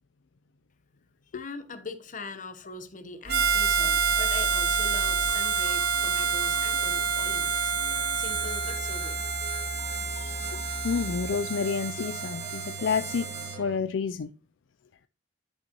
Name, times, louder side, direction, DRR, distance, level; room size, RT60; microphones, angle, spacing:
voice 1, 1.3-9.2, left 3 dB, 40° left, 1.0 m, -42 dB
sound 1, 3.2-13.8, equal, 80° right, 1.8 m, -38 dB
Harmonica, 3.3-13.6, right 6 dB, 55° right, 0.9 m, -28 dB
voice 2, 10.8-13.3 13.6-14.3, left 6 dB, 70° left, 0.4 m, -29 dB
11.0 x 5.4 x 2.9 m
head